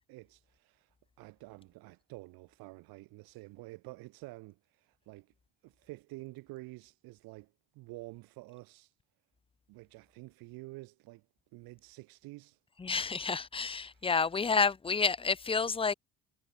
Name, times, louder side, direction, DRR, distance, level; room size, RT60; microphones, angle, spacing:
voice 1, 0.1-5.3 5.6-8.9 9.7-11.2 11.5-12.6 13.8-14.1, right 21 dB, 75° right, 3.4 m, -49 dB
voice 2, 12.8-15.9, left 5 dB, 15° left, 1.0 m, -29 dB
cardioid pair, 140°, 36 cm